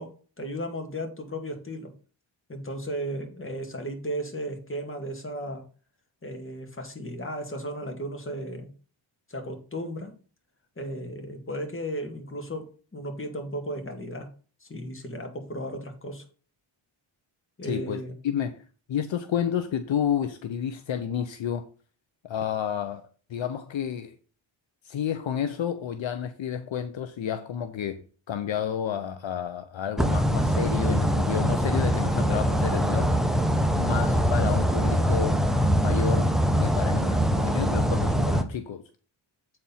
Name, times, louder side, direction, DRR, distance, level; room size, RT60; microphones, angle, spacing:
voice 1, 0.0-1.9 2.5-5.6 6.2-8.7 9.3-10.1 10.8-14.3 14.6-16.2 17.6-18.2, equal, 25° left, 2.2 m, -35 dB
voice 2, 17.6-18.6 18.9-21.6 22.2-24.2 24.8-28.0 28.3-33.1 33.7-35.4 35.8-38.8, left 9 dB, 65° left, 0.9 m, -30 dB
sound 1, 30.0-38.4, equal, ahead, 1.0 m, -23 dB
8.3 x 4.5 x 5.6 m
cardioid pair, 80°, 49 cm